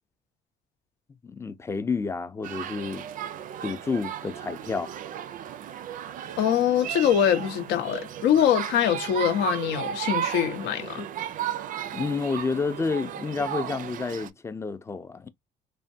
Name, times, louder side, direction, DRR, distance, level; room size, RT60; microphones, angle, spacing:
voice 1, 1.2-3.0 3.6-4.9 11.9-15.3, left 4 dB, 15° left, 0.4 m, -30 dB
sound 1, 2.4-14.3, right 10 dB, 50° right, 0.4 m, -35 dB
voice 2, 6.4-11.0, left 9 dB, 85° left, 0.8 m, -23 dB
3.3 x 2.1 x 2.6 m
cardioid pair, 110°, 17 cm